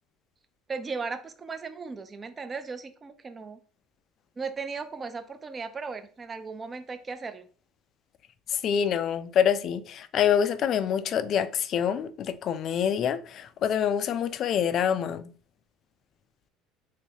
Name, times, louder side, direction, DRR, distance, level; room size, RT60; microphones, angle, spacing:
voice 1, 0.7-3.6 4.4-7.5, right 4 dB, 25° right, 0.5 m, -36 dB
voice 2, 8.5-15.3, left 8 dB, 50° left, 0.3 m, -26 dB
3.3 x 3.0 x 2.8 m
supercardioid pair, 105°, 0 cm